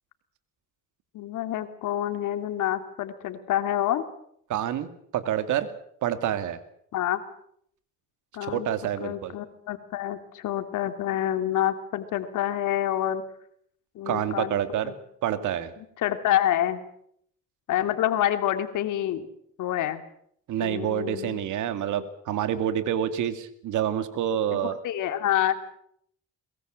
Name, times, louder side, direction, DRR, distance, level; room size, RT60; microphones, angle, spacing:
voice 1, 1.1-4.0 6.9-7.2 8.3-8.7 9.0-13.2 13.9-14.9 15.8-16.8 17.7-19.2 19.6-20.0 20.6-21.4 24.5-25.5, left 11 dB, 85° left, 9 dB, 2.5 m, -27 dB
voice 2, 4.5-5.7 6.0-6.6 8.4-9.3 14.1-14.9 15.2-15.7 20.5-24.8, right 10 dB, 85° right, 10 dB, 2.3 m, -28 dB
22.5 x 21.5 x 7.6 m, 0.69 s
cardioid pair, 90°, 30 cm